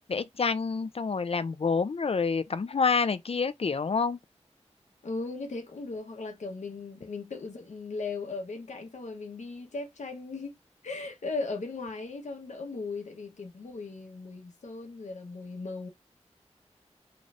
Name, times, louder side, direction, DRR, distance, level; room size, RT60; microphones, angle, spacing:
voice 1, 0.1-4.2, left 5 dB, 55° left, 0.5 m, -28 dB
voice 2, 5.0-10.6 10.8-15.9, left 3 dB, 90° left, 1.1 m, -37 dB
3.8 x 3.3 x 2.5 m
wide cardioid pair, 70°, 12 cm